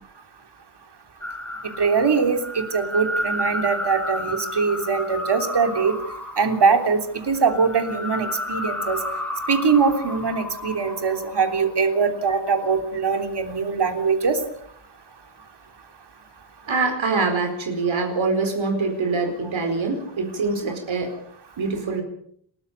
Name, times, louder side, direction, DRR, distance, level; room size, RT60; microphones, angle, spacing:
sound 1, 1.2-11.8 12.3-12.8, left 1 dB, 5° left, 2.5 m, -32 dB
voice 1, 1.8-5.9 6.4-7.0 7.3-9.0 9.5-14.4, right 5 dB, 60° right, 6 dB, 3.4 m, -22 dB
voice 2, 16.7-21.1 21.6-22.0, right 4 dB, 80° right, 4 dB, 4.8 m, -24 dB
30.0 x 14.0 x 6.9 m, 0.66 s
wide cardioid pair, 110°, 46 cm